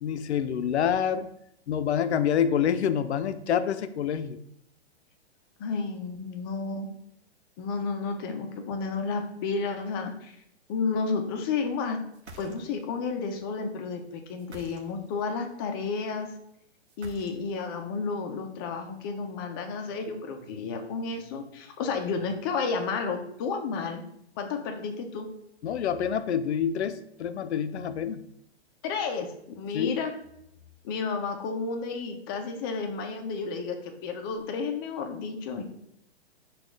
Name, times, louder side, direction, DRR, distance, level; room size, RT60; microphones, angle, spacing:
voice 1, 0.0-1.3 1.7-4.4 25.6-28.2 29.7-30.0, left 8 dB, 80° left, 12 dB, 0.5 m, -27 dB
voice 2, 5.6-6.9 7.6-10.3 10.7-12.0 12.4-16.3 17.0-24.0 24.4-25.3 28.8-30.1 30.8-35.7, left 4 dB, 20° left, 4 dB, 0.4 m, -31 dB
sound 1, 12.1-13.0 14.4-15.2 16.9-17.7, right 2 dB, 90° right, 0.8 m, -48 dB
4.2 x 2.4 x 4.7 m, 0.74 s
hypercardioid pair, 135°, 33 cm